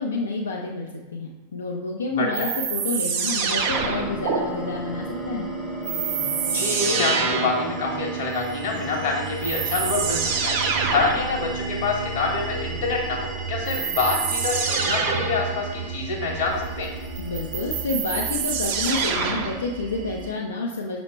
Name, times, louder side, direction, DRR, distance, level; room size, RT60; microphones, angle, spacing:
voice 1, 0.0-5.5 17.2-21.0, left 3 dB, 70° left, 0 dB, 0.4 m, -29 dB
voice 2, 2.1-2.5 6.4-16.9, left 3 dB, 50° left, 1 dB, 0.9 m, -26 dB
sound 1, 2.3-4.4 5.8-7.7 8.9-9.0 9.4-11.3 13.7-15.5 17.2-19.6, right 6 dB, 45° right, 0.6 m, -26 dB
sound 2, 3.7-20.3, right 3 dB, 10° right, 0.7 m, -33 dB
5.6 x 2.0 x 4.3 m, 1.2 s
figure-of-eight pair, 90°, 0 cm